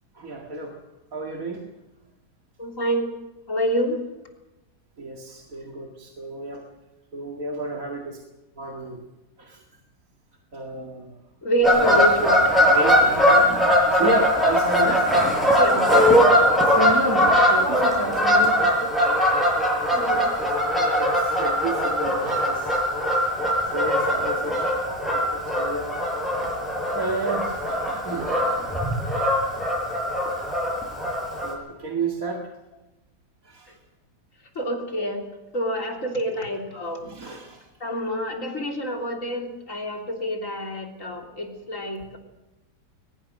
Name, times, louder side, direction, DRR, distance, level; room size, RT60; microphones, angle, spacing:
voice 1, 0.1-0.8 1.1-1.6 5.0-6.6 7.1-8.2 8.6-9.0 9.4-9.6 10.5-11.2 12.7-15.1 16.6-19.0 19.5-22.8 23.1-25.9 26.9-28.6 29.1-29.3 30.3-30.5 31.4-32.5 33.4-33.8 37.0-37.7, right 2 dB, 55° right, 0 dB, 2.5 m, -32 dB
voice 2, 2.6-3.1 3.5-4.0 11.4-12.5 15.5-16.0 19.9-20.3 34.6-35.2 35.5-37.4 37.8-42.2, equal, 50° left, 1 dB, 3.8 m, -27 dB
Fowl / Bird vocalization bird call bird song, 11.6-31.5, equal, ahead, 7.5 m, -21 dB
22.0 x 21.0 x 6.5 m, 1.0 s
omnidirectional pair, 1.8 m